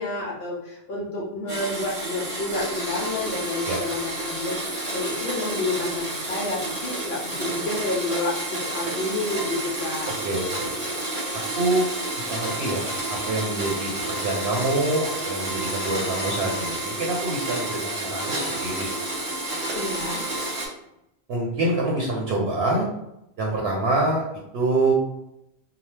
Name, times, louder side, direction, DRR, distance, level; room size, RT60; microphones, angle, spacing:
voice 1, 0.0-10.1 19.7-20.2, left 2 dB, 65° left, -3 dB, 0.9 m, -30 dB
Domestic sounds home sounds, 1.5-20.7, right 1 dB, 40° right, 0.8 m, -30 dB
voice 2, 10.2-10.9 11.3-11.9 12.2-18.9 21.3-22.9 23.4-24.2 24.5-24.9, right 2 dB, 70° right, -3 dB, 0.8 m, -26 dB
2.8 x 2.1 x 3.2 m, 0.84 s
omnidirectional pair, 1.2 m